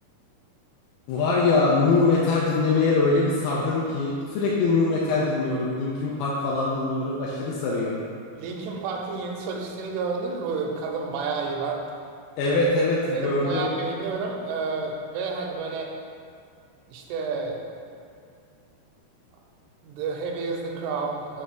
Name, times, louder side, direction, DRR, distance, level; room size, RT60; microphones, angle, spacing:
voice 1, 1.1-8.0 12.4-13.7, left 3 dB, 80° left, -5 dB, 2.4 m, -23 dB
voice 2, 8.4-11.8 12.4-12.5 13.1-15.9 16.9-17.6 19.8-21.4, right 4 dB, 85° right, 0 dB, 2.6 m, -30 dB
7.6 x 3.8 x 3.5 m, 2.4 s
omnidirectional pair, 4.8 m